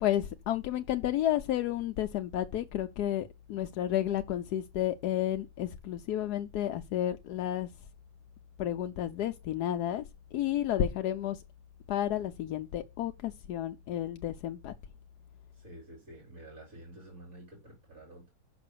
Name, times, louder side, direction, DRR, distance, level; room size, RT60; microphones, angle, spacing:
voice 1, 0.0-7.7 8.6-10.0 10.3-11.4 11.9-14.7, left 11 dB, 80° left, 1.2 m, -31 dB
voice 2, 15.5-18.3, right 1 dB, 45° right, 4.3 m, -50 dB
6.2 x 6.0 x 6.7 m
omnidirectional pair, 1.7 m